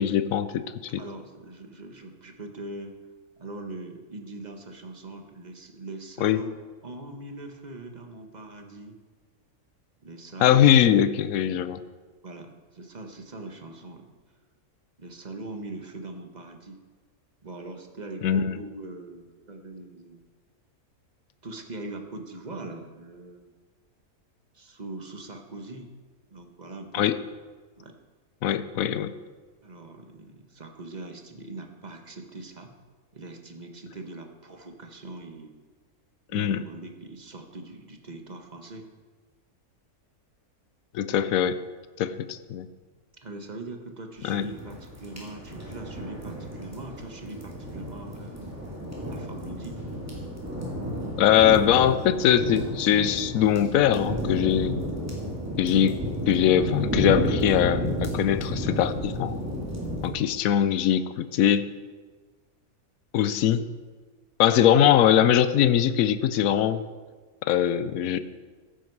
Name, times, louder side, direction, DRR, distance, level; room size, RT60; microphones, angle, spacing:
voice 1, 0.0-1.0 6.2-6.4 10.4-11.8 18.2-18.5 26.9-27.2 28.4-29.1 36.3-36.6 40.9-41.6 42.0-42.7 44.2-44.5 51.2-54.8 55.6-56.0 56.3-59.4 60.0-61.6 63.1-63.6 64.4-66.8 67.5-68.2, left 10 dB, 70° left, 13 dB, 1.1 m, -22 dB
voice 2, 1.0-3.0 3.4-6.5 6.8-9.0 10.0-10.7 12.2-14.1 15.0-16.8 17.4-20.2 21.4-23.5 24.5-25.9 26.3-27.1 27.8-28.0 29.6-32.7 33.1-35.5 36.3-38.9 43.2-48.6 49.1-49.8, right 2 dB, 30° right, 4 dB, 1.3 m, -41 dB
sound 1, 44.2-60.1, equal, 10° right, 2.9 m, -32 dB
14.5 x 11.0 x 4.7 m, 1.4 s
omnidirectional pair, 1.6 m